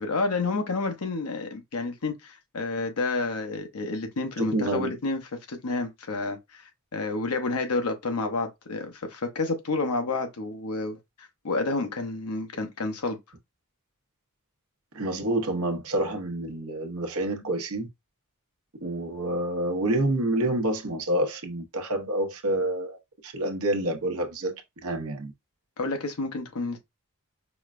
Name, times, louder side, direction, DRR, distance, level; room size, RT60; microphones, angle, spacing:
voice 1, 0.0-13.2 25.8-26.8, left 3 dB, 85° left, 0.8 m, -30 dB
voice 2, 4.4-4.9 14.9-17.9 18.8-23.0 23.2-24.5 24.8-25.3, right 1 dB, 70° right, 0.8 m, -28 dB
5.1 x 2.1 x 2.4 m
head